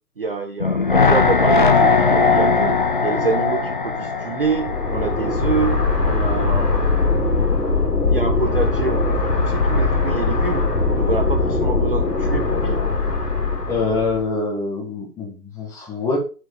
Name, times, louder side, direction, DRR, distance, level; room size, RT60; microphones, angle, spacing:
voice 1, 0.2-7.0 8.1-10.7 11.0-12.9, right 4 dB, 35° right, 7 dB, 0.6 m, -26 dB
sound 1, 0.6-5.7 6.0-6.1, left 4 dB, 30° left, 0.6 m, -18 dB
sound 2, 4.4-14.3, left 3 dB, 80° left, 2.8 m, -21 dB
voice 2, 13.7-16.2, left 4 dB, 5° left, -3 dB, 1.5 m, -24 dB
9.0 x 4.9 x 5.3 m, 0.35 s
figure-of-eight pair, 135°, 49 cm